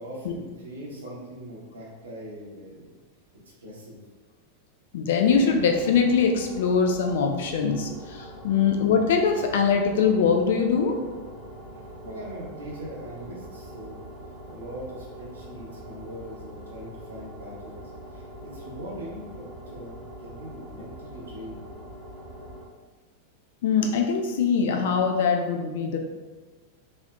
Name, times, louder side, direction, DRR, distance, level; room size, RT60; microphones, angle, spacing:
voice 1, 0.0-2.9 3.6-4.0 11.7-14.0 14.5-21.7, equal, 70° right, -6 dB, 0.9 m, -41 dB
voice 2, 4.9-11.0 23.6-26.0, left 6 dB, 55° left, 3 dB, 0.3 m, -22 dB
sound 1, 5.3-22.6, equal, 20° left, 1.4 m, -43 dB
3.2 x 2.6 x 2.3 m, 1.3 s
figure-of-eight pair, 90°, 0 cm